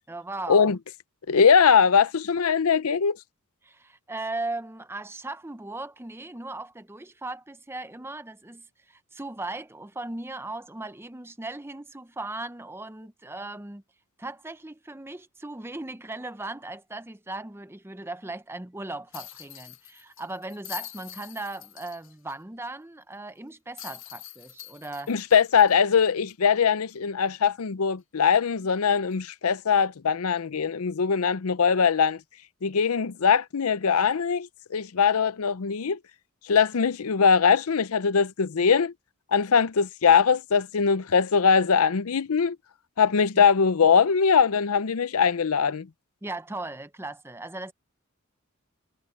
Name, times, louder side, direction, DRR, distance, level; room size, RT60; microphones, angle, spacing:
voice 1, 0.1-0.7 3.6-13.8 14.2-25.1 43.3-43.4 46.2-47.7, right 2 dB, 10° right, 0.7 m, -37 dB
voice 2, 1.3-3.2 25.1-32.2 32.6-36.0 36.5-38.9 39.3-42.6 43.0-45.9, left 6 dB, 75° left, 0.6 m, -21 dB
sound 1, 19.1-22.3 22.7-22.8 23.8-26.5 26.9-27.0 29.1-29.3, left 13 dB, 60° left, 1.4 m, -44 dB
head